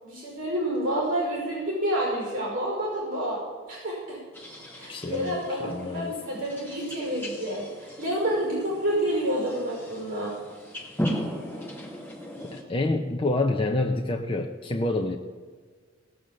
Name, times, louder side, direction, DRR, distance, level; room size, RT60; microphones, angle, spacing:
voice 1, 0.0-3.4 3.7-4.2 4.8-10.3, right 1 dB, 45° right, -2 dB, 5.3 m, -29 dB
sound 1, 4.3-12.6, equal, 10° left, 2.3 m, -37 dB
voice 2, 4.9-6.1 12.5-15.2, left 2 dB, 25° left, 2 dB, 0.7 m, -27 dB
17.5 x 6.8 x 7.7 m, 1.5 s
head